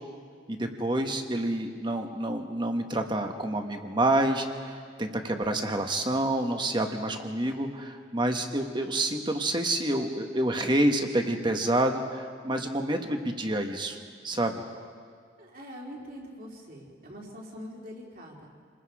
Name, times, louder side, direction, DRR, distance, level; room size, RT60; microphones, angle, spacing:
voice 1, 0.5-14.0 14.2-14.6, right 1 dB, 25° right, 5 dB, 1.4 m, -28 dB
voice 2, 15.4-18.5, equal, 50° right, -2 dB, 3.7 m, -43 dB
29.0 x 20.5 x 4.9 m, 2.1 s
head